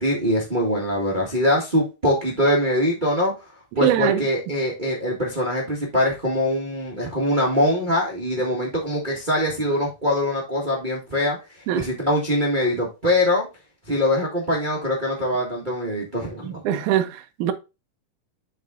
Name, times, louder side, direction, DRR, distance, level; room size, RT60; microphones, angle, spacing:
voice 1, 0.0-3.3 3.7-11.4 11.7-13.5 13.9-16.8, left 1 dB, 40° right, 0.6 m, -23 dB
voice 2, 3.8-4.2 11.7-11.8 16.7-17.5, right 11 dB, 75° right, 1.9 m, -22 dB
8.8 x 3.9 x 3.7 m
omnidirectional pair, 4.0 m